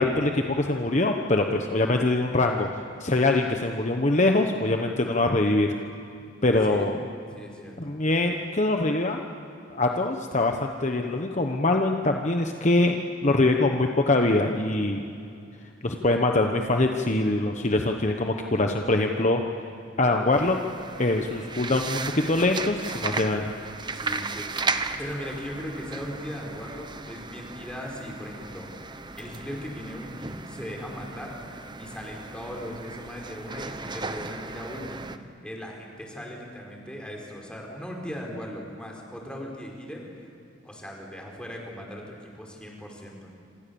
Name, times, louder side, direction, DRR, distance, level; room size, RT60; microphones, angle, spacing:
voice 1, 0.0-2.7 3.0-5.7 6.4-7.0 7.8-9.2 9.7-15.0 15.8-19.4 20.0-20.6 21.0-23.5, left 2 dB, 35° left, 3 dB, 1.2 m, -23 dB
voice 2, 6.4-6.9 7.3-7.9 23.9-28.7 29.2-35.0 35.4-40.1 40.6-43.3, equal, 5° left, -1 dB, 4.7 m, -38 dB
sound 1, 20.3-35.2, right 4 dB, 25° right, 1.0 m, -36 dB
27.5 x 26.5 x 7.1 m, 2.6 s
head